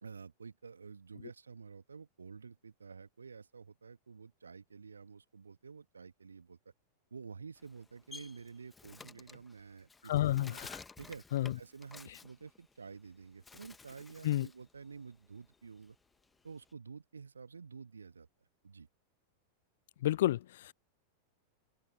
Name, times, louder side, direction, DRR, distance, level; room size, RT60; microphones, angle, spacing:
voice 1, 0.0-6.6 7.1-10.6 11.0-11.2 11.6-16.0 16.4-18.3 18.6-18.9, right 5 dB, 75° right, 1.7 m, -50 dB
Bird, 7.6-13.1 13.4-14.6 15.0-16.7, left 4 dB, 10° left, 1.4 m, -53 dB
voice 2, 10.0-10.8 11.3-11.5 14.2-14.5 20.0-20.7, left 13 dB, 55° left, 0.4 m, -31 dB
figure-of-eight pair, 90°, 0 cm